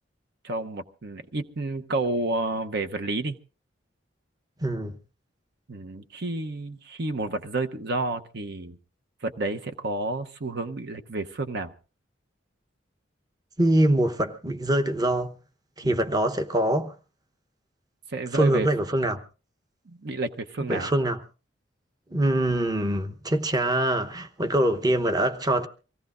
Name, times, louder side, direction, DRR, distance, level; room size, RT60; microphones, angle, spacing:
voice 1, 0.4-3.3 5.7-8.8 9.2-11.7 15.8-16.0 18.1-18.7 19.9-20.9, right 2 dB, 60° right, 0.9 m, -30 dB
voice 2, 4.6-4.9 13.6-15.3 15.8-16.9 18.3-19.2 20.7-21.2 22.1-25.7, right 1 dB, 20° right, 1.0 m, -24 dB
25.0 x 17.0 x 2.5 m
head